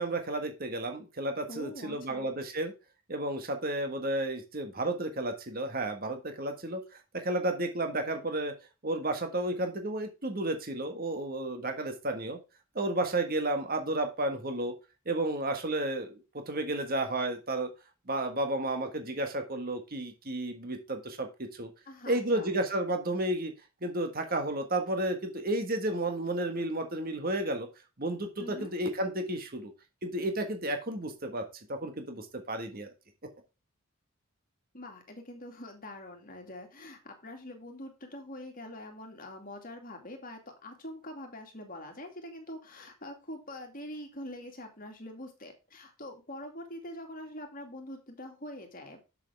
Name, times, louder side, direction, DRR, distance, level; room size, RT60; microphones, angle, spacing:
voice 1, 0.0-2.7 3.1-6.8 7.1-8.5 8.8-12.4 12.7-14.7 15.0-17.7 18.1-21.7 22.1-23.5 23.8-27.7 28.0-29.7 30.0-31.4 31.7-32.9, right 1 dB, 40° right, 6 dB, 1.6 m, -32 dB
voice 2, 1.5-2.3 21.9-22.5 28.4-28.7 34.7-49.0, left 1 dB, 40° left, 4 dB, 2.4 m, -44 dB
8.0 x 7.5 x 3.5 m, 0.28 s
head